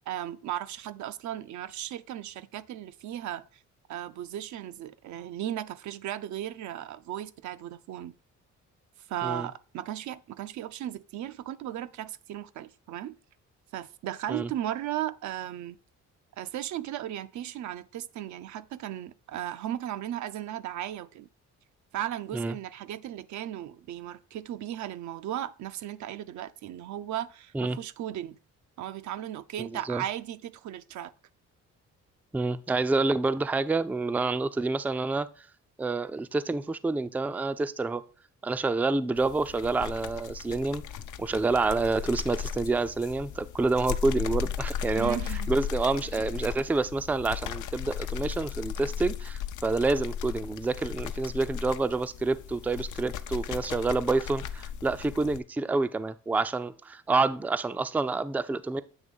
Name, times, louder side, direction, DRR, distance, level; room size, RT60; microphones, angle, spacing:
voice 1, 0.1-3.5 3.9-8.1 9.1-13.2 13.7-15.8 16.4-21.3 21.9-28.4 28.8-31.1 44.9-45.5, right 12 dB, 70° right, 0.5 m, -36 dB
voice 2, 29.6-30.0 32.3-35.3 35.8-38.0 38.4-40.8 41.2-45.2 45.5-58.8, right 3 dB, 5° right, 0.3 m, -28 dB
sound 1, 39.2-55.4, left 8 dB, 75° left, 0.6 m, -36 dB
8.1 x 3.1 x 5.2 m
cardioid pair, 90°, 30 cm